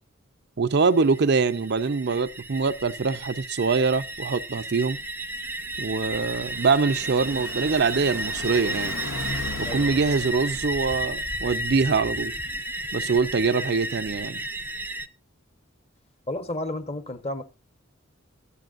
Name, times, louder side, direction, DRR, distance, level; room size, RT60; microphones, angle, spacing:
voice 1, 0.6-5.0 5.8-9.0 9.7-12.3 12.9-14.4, right 4 dB, 55° right, 0.6 m, -24 dB
sound 1, 0.7-15.1, right 1 dB, 10° right, 0.6 m, -33 dB
Car passing by, 5.6-11.1, left 3 dB, 65° left, 0.9 m, -38 dB
voice 2, 9.6-10.0 16.3-17.4, left 1 dB, 30° left, 1.1 m, -32 dB
23.0 x 8.4 x 2.5 m
head